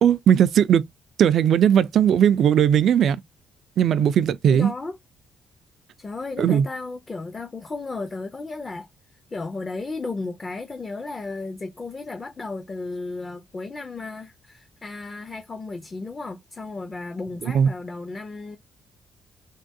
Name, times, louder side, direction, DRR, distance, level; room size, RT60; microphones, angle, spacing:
voice 1, 0.0-0.8 1.2-3.2 3.8-4.7 6.4-6.7 17.5-17.7, right 9 dB, 65° right, 0.3 m, -18 dB
voice 2, 4.5-5.0 6.0-8.9 9.3-18.6, left 3 dB, 30° left, 0.5 m, -34 dB
3.5 x 2.2 x 2.6 m
cardioid pair, 90°, 0 cm